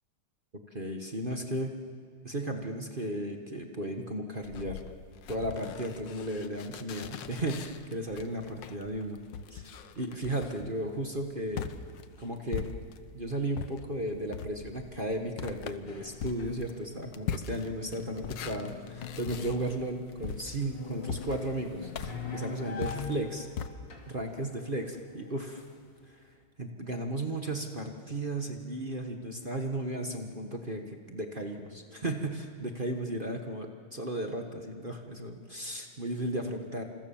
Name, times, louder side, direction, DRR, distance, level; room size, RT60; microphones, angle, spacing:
voice 1, 0.7-1.7 2.2-4.8 5.3-9.2 9.5-11.7 12.2-12.7 13.1-23.5 24.1-25.6 26.1-26.3 26.6-36.8, right 1 dB, 25° right, 3 dB, 1.4 m, -35 dB
sound 1, 4.4-13.2 13.5-23.7, left 7 dB, 60° left, 1.5 m, -41 dB
sound 2, 15.9-16.9 17.2-26.1, left 5 dB, 85° left, 3.6 m, -43 dB
29.0 x 27.5 x 7.2 m, 2.2 s
omnidirectional pair, 2.4 m